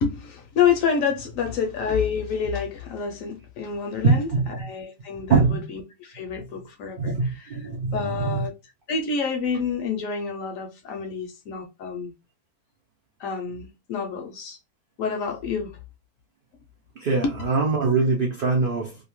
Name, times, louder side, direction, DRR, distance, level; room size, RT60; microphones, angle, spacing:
voice 1, 0.0-4.3 4.6-7.1 7.4-7.5 7.9-8.5 8.9-12.1 13.2-14.6 15.0-15.8, left 6 dB, 70° left, 0.8 m, -28 dB
voice 2, 4.0-4.5 5.3-5.7 7.0-8.5 17.0-19.0, right 4 dB, 80° right, 0.4 m, -23 dB
2.7 x 2.4 x 2.9 m
omnidirectional pair, 1.7 m